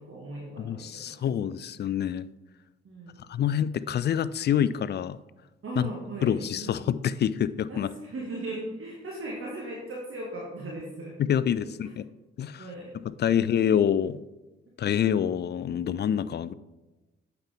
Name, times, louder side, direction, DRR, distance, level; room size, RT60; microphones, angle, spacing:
voice 1, 0.0-1.2 2.8-3.2 5.6-6.7 7.7-11.2 11.8-11.9 12.6-12.9 13.2-13.6, right 2 dB, 45° right, -3 dB, 1.8 m, -38 dB
voice 2, 0.6-2.3 3.3-5.2 5.8-5.9 6.2-7.9 11.2-12.0 12.4-12.7 13.0-14.2 14.8-16.5, left 9 dB, 35° left, 17 dB, 0.4 m, -26 dB
8.9 x 7.0 x 3.5 m, 1.1 s
hypercardioid pair, 40°, 29 cm